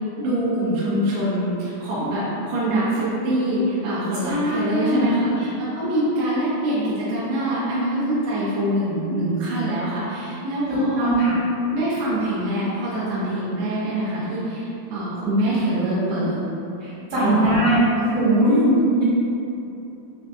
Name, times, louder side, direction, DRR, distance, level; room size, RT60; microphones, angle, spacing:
voice 1, 0.2-11.1 11.7-16.3 17.2-17.6, right 1 dB, 80° right, -9 dB, 2.7 m, -24 dB
voice 2, 4.3-5.0 11.0-11.3 16.8-17.8 18.1-19.0, right 1 dB, 65° right, -15 dB, 2.8 m, -20 dB
6.4 x 2.5 x 2.3 m, 2.9 s
omnidirectional pair, 4.8 m